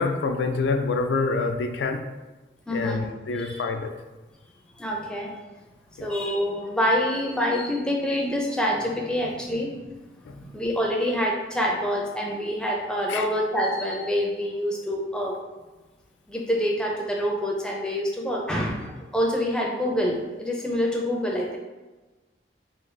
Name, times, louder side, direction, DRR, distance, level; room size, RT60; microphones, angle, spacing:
voice 1, 0.0-2.0 2.7-3.9 6.0-6.1 13.1-13.2, left 3 dB, 75° left, 6 dB, 0.3 m, -26 dB
voice 2, 2.7-3.0 3.3-3.6 4.8-5.4 6.0-9.8 10.3-15.4 16.3-21.6, equal, 5° left, -1 dB, 0.4 m, -26 dB
3.9 x 2.4 x 3.2 m, 1.2 s
head